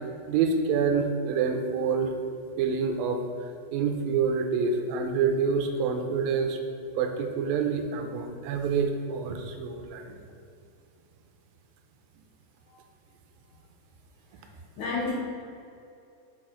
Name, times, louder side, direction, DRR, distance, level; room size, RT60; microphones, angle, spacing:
voice 1, 0.3-2.1 2.6-6.6 7.0-10.1, right 5 dB, 85° right, 5 dB, 2.4 m, -27 dB
voice 2, 14.8-15.1, left 4 dB, 70° left, -5 dB, 2.1 m, -31 dB
6.8 x 6.0 x 3.8 m, 2.6 s
omnidirectional pair, 4.1 m